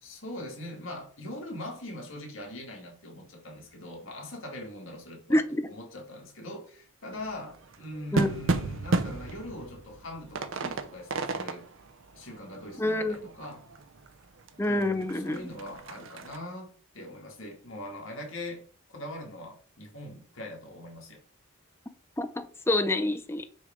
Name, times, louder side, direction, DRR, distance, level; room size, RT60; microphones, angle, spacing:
voice 1, 0.0-5.4 5.7-11.7 12.1-13.6 14.6-16.7 16.9-18.6 18.9-21.2, left 1 dB, 65° left, 1.9 m, -42 dB
voice 2, 5.3-5.7 8.1-8.3 12.8-13.2 14.6-15.5 22.2-23.4, left 1 dB, 10° left, 0.5 m, -27 dB
sound 1, 7.2-14.1 14.5-14.6 14.8-16.4, right 3 dB, 65° right, 0.6 m, -33 dB
6.4 x 3.4 x 5.0 m
head